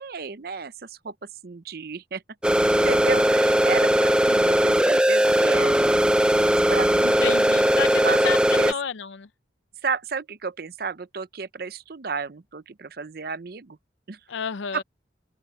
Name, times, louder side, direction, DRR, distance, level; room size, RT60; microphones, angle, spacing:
voice 1, 0.0-2.2 2.8-5.8 6.7-7.1 7.8-8.7 9.8-13.8 14.1-14.2 14.7-14.8, right 5 dB, 50° right, 0.6 m, -32 dB
sound 1, 2.4-8.7, right 1 dB, 5° right, 0.4 m, -19 dB
voice 2, 7.0-8.4 8.7-9.3 14.3-14.8, left 7 dB, 80° left, 0.5 m, -30 dB
open air
head